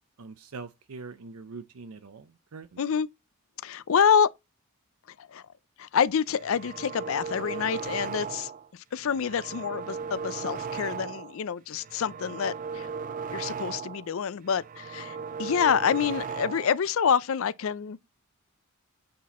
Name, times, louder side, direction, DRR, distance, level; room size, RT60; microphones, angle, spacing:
voice 1, 0.2-2.8, right 4 dB, 80° right, 0.6 m, -43 dB
voice 2, 2.8-3.1 3.6-4.3 5.2-5.4 5.8-12.9 13.3-18.0, left 7 dB, 65° left, 0.4 m, -27 dB
sound 1, 6.3-8.7 9.0-11.4 11.8-14.1 14.5-16.8, right 6 dB, 35° right, 0.4 m, -37 dB
8.6 x 4.2 x 4.1 m
head